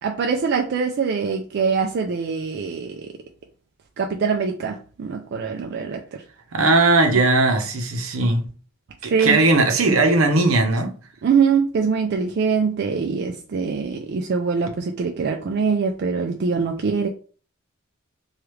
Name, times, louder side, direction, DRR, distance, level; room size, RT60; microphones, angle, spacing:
voice 1, 0.0-3.0 4.0-6.2 9.0-9.4 11.2-17.1, right 5 dB, 55° right, 0.4 m, -23 dB
voice 2, 6.5-8.5 9.0-10.9, right 2 dB, 75° right, 0.7 m, -18 dB
3.2 x 2.3 x 3.0 m
head